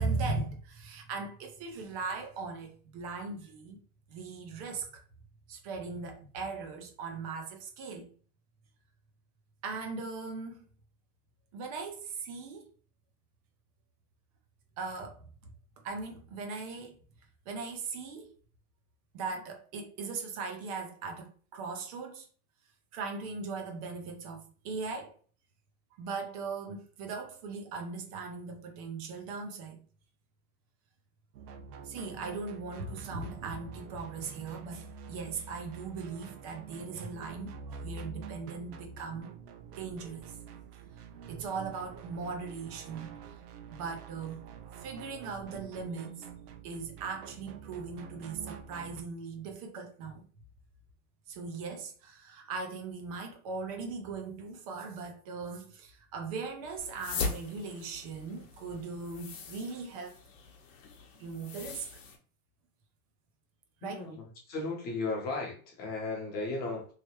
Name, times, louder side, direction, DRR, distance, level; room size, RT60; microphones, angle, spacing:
voice 1, 0.0-3.8 4.1-5.0 5.5-8.1 9.6-10.6 11.5-12.7 14.8-15.3 15.8-17.0 17.5-18.3 19.1-22.3 22.9-25.2 26.0-29.8 31.8-39.3 39.8-40.4 41.3-43.2 43.7-44.4 44.8-46.3 46.6-50.3 51.3-60.2 61.2-62.0 63.8-64.0, right 4 dB, 25° right, 0.4 m, -39 dB
sound 1, 31.3-49.0, right 5 dB, 75° right, 0.8 m, -47 dB
sound 2, 56.8-62.2, left 4 dB, 55° left, 1.0 m, -40 dB
voice 2, 63.8-66.9, left 3 dB, 20° left, 0.8 m, -35 dB
3.2 x 3.2 x 2.9 m
supercardioid pair, 160°, 45 cm